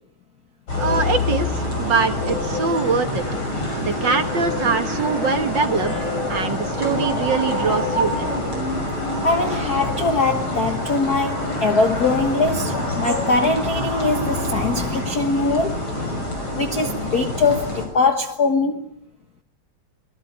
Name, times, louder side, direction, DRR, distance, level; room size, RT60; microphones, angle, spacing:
sound 1, 0.7-17.9, left 1 dB, 35° left, 7.0 m, -26 dB
voice 1, 0.8-3.2 3.8-5.9 6.3-8.4, right 5 dB, 45° right, 1.6 m, -23 dB
voice 2, 9.2-16.2 16.5-18.9, left 3 dB, 65° left, 0.9 m, -22 dB
26.5 x 19.5 x 9.2 m
omnidirectional pair, 3.7 m